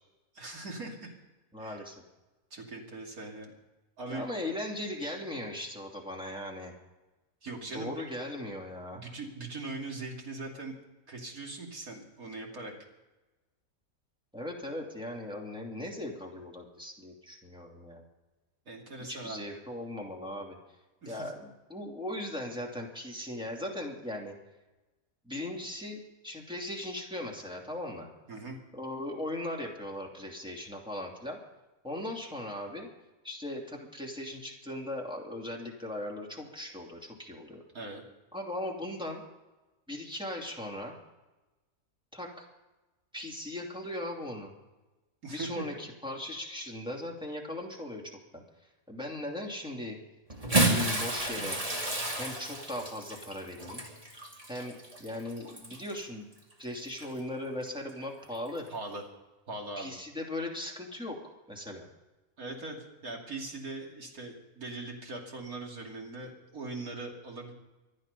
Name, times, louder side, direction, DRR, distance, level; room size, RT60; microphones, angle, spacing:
voice 1, 0.3-1.2 1.6-1.8 2.5-3.5 4.0-4.3 7.4-8.0 8.9-10.8 11.1-12.7 18.7-19.5 21.0-21.3 28.3-28.6 37.7-38.0 45.2-45.6 58.7-59.0 59.5-59.9 62.4-67.5, right 2 dB, 80° right, 0 dB, 3.2 m, -40 dB
voice 2, 1.5-1.9 4.1-6.7 7.6-9.0 14.3-18.1 19.1-20.6 21.0-24.4 25.2-28.1 28.7-31.4 31.8-32.9 33.2-37.6 38.3-39.2 39.9-40.9 42.1-42.4 43.1-44.5 45.3-48.4 48.9-50.0 50.5-51.6 52.1-53.8 54.5-56.3 56.6-58.7 59.8-61.2 61.5-61.9, left 1 dB, 5° right, -1 dB, 2.8 m, -38 dB
Bathtub (filling or washing) / Splash splatter, 50.3-56.0 56.9-57.1 58.5-58.6, right 1 dB, 25° right, 2.5 m, -31 dB
25.0 x 9.8 x 5.4 m, 1.1 s
omnidirectional pair, 1.5 m